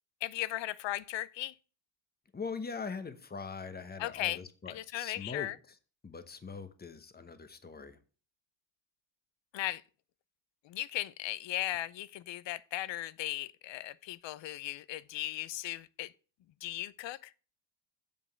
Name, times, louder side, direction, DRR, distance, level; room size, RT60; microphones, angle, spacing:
voice 1, 0.2-1.5 4.0-4.4 4.7-5.5 9.5-9.8 10.6-16.1 16.6-17.3, left 15 dB, 65° left, 0.6 m, -37 dB
voice 2, 2.3-5.8 6.0-8.0, left 5 dB, 20° left, 1.0 m, -42 dB
7.6 x 5.4 x 6.6 m
cardioid pair, 115°, 47 cm